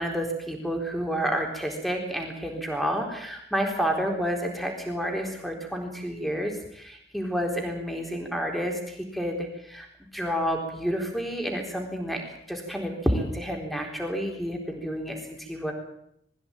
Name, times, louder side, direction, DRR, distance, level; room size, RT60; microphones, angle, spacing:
voice 1, 0.0-9.9 10.1-12.2 12.5-15.7, equal, ahead, 2 dB, 4.0 m, -30 dB
21.5 x 15.0 x 9.0 m, 0.74 s
head